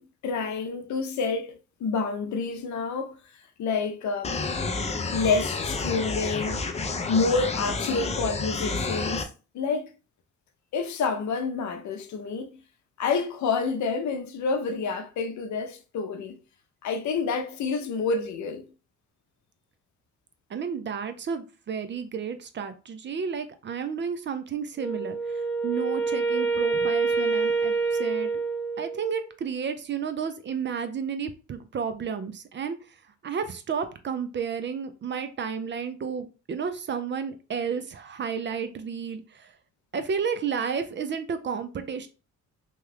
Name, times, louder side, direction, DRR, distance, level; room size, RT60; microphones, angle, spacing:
voice 1, 0.0-3.2 3.6-4.4 5.1-6.6 7.1-9.3 9.5-9.9 10.7-12.6 13.0-16.4 16.8-18.7, left 4 dB, 70° left, 0.6 m, -28 dB
sound 1, 4.2-9.2, left 3 dB, 20° left, 0.4 m, -30 dB
voice 2, 20.5-28.3 28.8-32.8 33.2-39.5 39.9-42.1, right 6 dB, 40° right, 0.5 m, -32 dB
Wind instrument woodwind instrument, 24.8-29.1, right 4 dB, 5° left, 1.1 m, -26 dB
3.0 x 2.3 x 3.2 m
cardioid pair, 90°, 30 cm